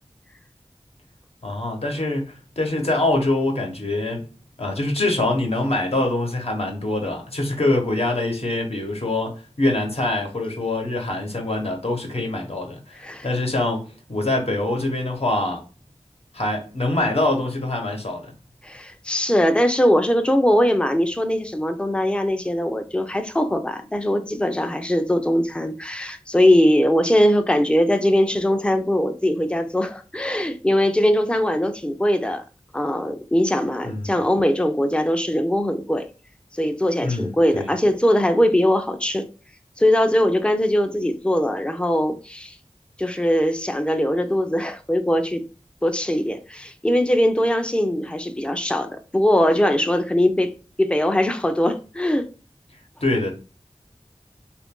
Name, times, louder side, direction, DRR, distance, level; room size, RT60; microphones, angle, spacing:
voice 1, 1.4-4.3 4.6-15.6 16.3-18.3 33.8-34.2 37.0-37.7 53.0-53.3, left 2 dB, 60° left, 1.0 m, -24 dB
voice 2, 18.6-32.4 32.7-36.1 36.5-39.3 39.8-42.6 43.0-45.4 45.8-50.5 50.8-52.3, equal, 10° left, 0.4 m, -21 dB
2.9 x 2.5 x 3.6 m
wide cardioid pair, 40°, 11 cm